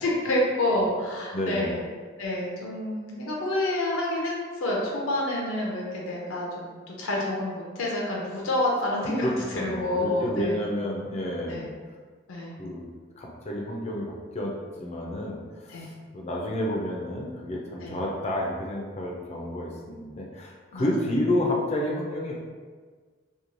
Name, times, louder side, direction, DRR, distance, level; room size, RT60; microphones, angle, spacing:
voice 1, 0.0-1.8 2.2-4.3 4.6-10.6 11.5-11.6 12.3-12.5 15.7-15.9 17.8-18.0 20.7-20.9, left 1 dB, 85° left, -3 dB, 0.5 m, -28 dB
voice 2, 1.3-1.8 9.2-11.7 12.6-12.9 13.2-14.5 14.8-22.4, left 1 dB, 35° left, -2 dB, 0.4 m, -30 dB
3.0 x 2.2 x 2.5 m, 1.5 s
head